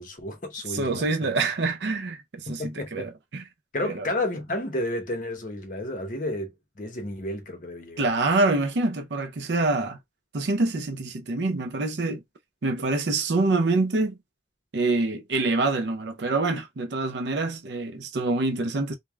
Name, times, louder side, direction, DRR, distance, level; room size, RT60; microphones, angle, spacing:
voice 1, 0.0-1.0 2.5-3.1 3.7-8.1, left 1 dB, 45° left, 0.8 m, -31 dB
voice 2, 0.7-3.4 3.8-4.1 8.0-10.0 10.3-12.2 12.6-14.2 14.7-19.0, right 3 dB, 80° right, 0.6 m, -26 dB
3.2 x 2.1 x 2.2 m
head